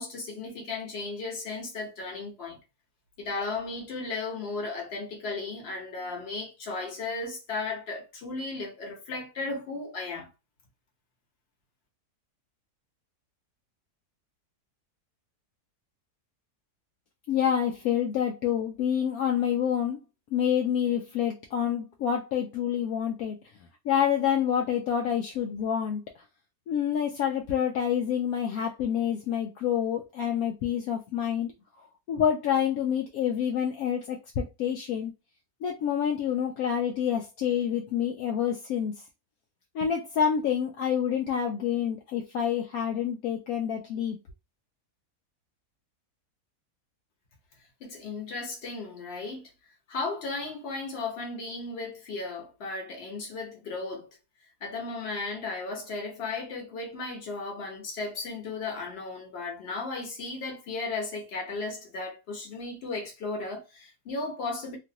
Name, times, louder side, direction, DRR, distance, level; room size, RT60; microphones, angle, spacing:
voice 1, 0.0-2.6 3.2-10.3 47.8-49.5 49.9-54.2 54.6-64.8, left 3 dB, 45° left, 1.1 m, -35 dB
voice 2, 17.3-20.0 20.3-23.4 23.8-26.0 26.7-31.5 32.1-35.1 35.6-38.9 39.7-44.2, left 8 dB, 75° left, 1.0 m, -27 dB
2.9 x 2.5 x 2.7 m
omnidirectional pair, 1.7 m